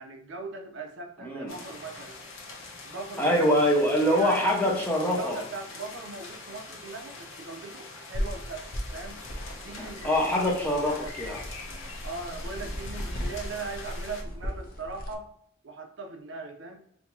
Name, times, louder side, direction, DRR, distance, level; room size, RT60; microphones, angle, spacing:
voice 1, 0.0-2.2 2.8-3.4 4.1-4.7 5.1-8.6 8.9-9.2 9.6-10.7 11.0-11.1 12.0-15.3 15.6-16.8, right 3 dB, 60° right, 3 dB, 0.6 m, -39 dB
voice 2, 1.2-1.5 3.2-5.4 9.8-11.4, equal, 10° left, -2 dB, 0.8 m, -24 dB
sound 1, 1.5-14.2, left 3 dB, 70° left, 0.9 m, -44 dB
sound 2, 8.1-15.1, equal, 45° left, 0.6 m, -37 dB
4.3 x 2.7 x 2.7 m, 0.74 s
head